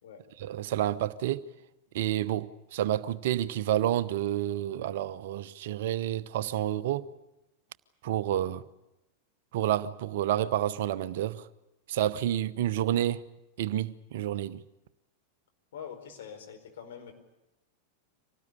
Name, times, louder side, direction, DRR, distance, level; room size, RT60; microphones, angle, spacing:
voice 1, 0.4-1.4 1.9-7.1 8.0-8.6 9.5-11.5 11.9-13.2 13.6-14.6, right 12 dB, 55° right, 0.9 m, -29 dB
voice 2, 15.7-17.1, left 8 dB, 60° left, 4.8 m, -44 dB
25.5 x 18.5 x 10.0 m
figure-of-eight pair, 90°, 0 cm